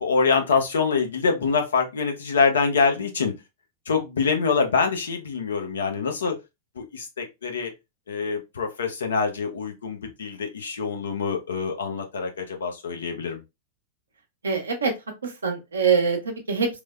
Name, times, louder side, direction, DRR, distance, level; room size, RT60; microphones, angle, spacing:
voice 1, 0.0-3.3 3.9-6.4 6.8-7.7 8.1-13.4, left 5 dB, 75° left, 0.6 m, -25 dB
voice 2, 14.4-14.9 15.2-16.8, right 5 dB, 80° right, 0.7 m, -24 dB
3.1 x 2.0 x 2.3 m
figure-of-eight pair, 95°, 0 cm